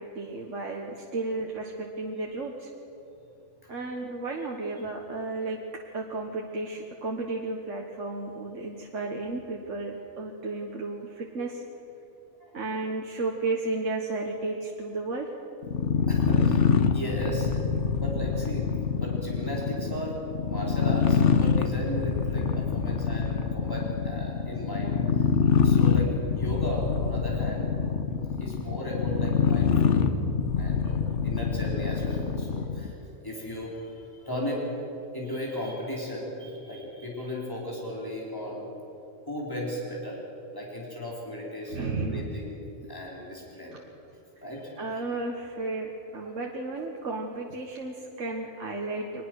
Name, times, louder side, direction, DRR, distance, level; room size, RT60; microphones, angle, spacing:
voice 1, 0.0-2.7 3.7-5.6 5.9-11.6 12.5-15.3 41.7-42.4 44.8-49.2, right 3 dB, 75° right, 0 dB, 1.8 m, -33 dB
sound 1, 15.6-32.9, left 6 dB, 65° left, 1.3 m, -25 dB
voice 2, 16.1-17.5 17.9-25.3 25.6-27.8 28.4-30.1 30.6-32.9 33.2-34.7 35.1-38.7 39.3-40.2 40.5-42.6 42.9-43.7 44.4-44.7, equal, 15° left, -4 dB, 4.6 m, -36 dB
22.5 x 20.5 x 6.4 m, 2.9 s
omnidirectional pair, 1.3 m